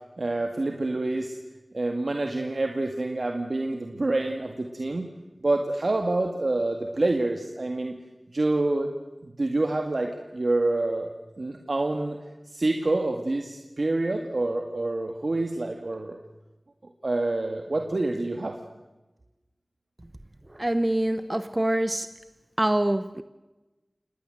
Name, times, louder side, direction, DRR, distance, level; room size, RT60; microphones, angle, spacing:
voice 1, 0.2-1.4 1.7-5.1 5.4-7.9 8.3-8.9 9.2-11.1 11.4-12.2 12.5-16.2 17.0-18.6, right 2 dB, 65° right, 2.0 m, -27 dB
voice 2, 20.6-22.1 22.6-23.2, right 1 dB, 30° right, 1.0 m, -25 dB
27.0 x 19.5 x 7.8 m
wide cardioid pair, 40°, 0 cm